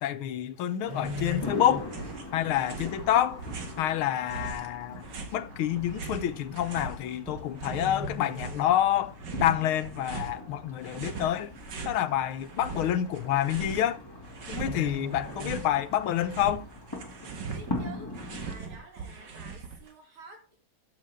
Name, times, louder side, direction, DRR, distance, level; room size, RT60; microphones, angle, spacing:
voice 1, 0.0-1.9 2.3-3.4 3.8-11.5 11.9-14.0 14.5-16.6, left 11 dB, 85° left, 1.7 m, -28 dB
sound 1, 0.6-2.3 2.6-2.9 3.4-3.5 4.4-4.5 4.7-4.8 5.7-5.9 7.0-7.4 7.7-9.2 9.6-9.8 10.3-10.8 11.2-11.3 11.5-11.6 12.0-12.1 13.1-13.2 13.4-13.7 14.0-14.1 14.5-16.2 16.5-16.6, left 4 dB, 20° right, 2.4 m, -40 dB
sound 2, 0.9-1.5 1.8-3.9 4.3-7.0 7.3-8.7 9.2-10.4 10.8-12.0 12.4-13.9 14.2-15.7 16.0-19.9, right 5 dB, 60° right, 2.2 m, -40 dB
sound 3, 1.4-18.6, left 1 dB, 10° left, 2.5 m, -42 dB
voice 2, 17.4-20.6, right 3 dB, 75° right, 3.8 m, -50 dB
13.0 x 8.5 x 3.6 m
omnidirectional pair, 2.3 m